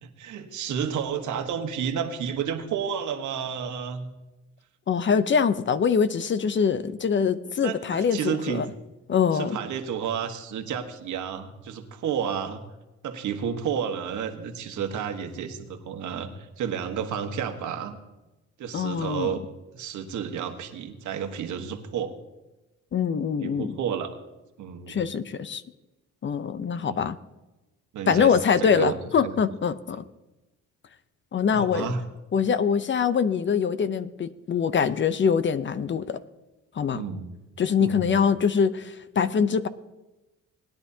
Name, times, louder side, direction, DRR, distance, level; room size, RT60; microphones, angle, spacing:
voice 1, 0.0-4.1 7.6-8.6 9.3-12.6 13.0-16.3 16.6-18.0 18.6-19.4 19.7-22.1 23.4-24.2 24.6-25.0 26.8-27.0 27.9-29.0 29.2-29.3 31.5-32.0 36.9-37.3 37.8-38.1, right 7 dB, 75° right, 6 dB, 1.4 m, -31 dB
voice 2, 4.9-8.7 9.1-9.6 18.7-19.3 22.9-23.7 24.9-25.6 26.2-27.2 28.1-30.0 31.3-31.9 32.3-36.2 36.8-37.0 37.6-39.7, left 6 dB, 40° left, 14 dB, 0.6 m, -24 dB
19.5 x 10.5 x 2.8 m, 1.0 s
cardioid pair, 90°, 30 cm